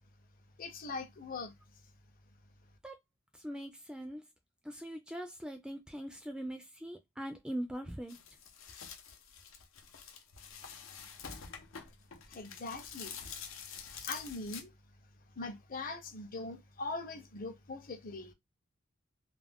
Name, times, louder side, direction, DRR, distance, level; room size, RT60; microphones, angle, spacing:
voice 1, 0.6-1.5 12.3-13.2 14.1-14.7 15.4-18.3, left 3 dB, 45° left, 0.6 m, -41 dB
voice 2, 3.4-4.2 4.6-8.2, equal, 5° right, 0.3 m, -41 dB
sound 1, 8.1-14.6, left 7 dB, 90° left, 0.6 m, -47 dB
2.4 x 2.1 x 3.4 m
head